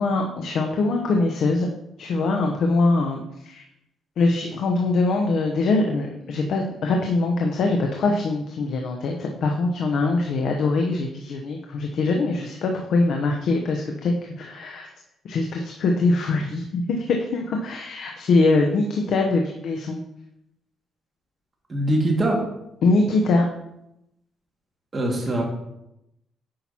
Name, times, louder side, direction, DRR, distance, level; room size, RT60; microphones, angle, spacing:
voice 1, 0.0-1.7 2.0-3.6 4.2-14.9 15.2-20.0 22.8-23.4, left 3 dB, 70° left, 2 dB, 0.8 m, -23 dB
voice 2, 21.7-22.4 24.9-25.4, right 1 dB, 30° right, -1 dB, 1.9 m, -22 dB
8.6 x 5.8 x 2.8 m, 0.84 s
cardioid pair, 90°, 0 cm